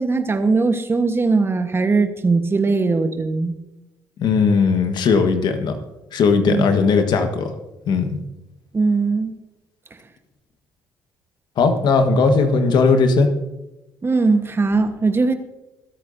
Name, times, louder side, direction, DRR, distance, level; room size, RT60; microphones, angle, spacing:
voice 1, 0.0-3.5 6.5-6.8 8.7-9.3 14.0-15.3, right 3 dB, 30° right, 8 dB, 1.3 m, -19 dB
voice 2, 4.2-5.8 6.1-7.5 7.9-8.2 11.6-13.3, left 4 dB, 60° left, 6 dB, 1.4 m, -17 dB
24.0 x 8.5 x 2.7 m, 1.0 s
hypercardioid pair, 60°, 8 cm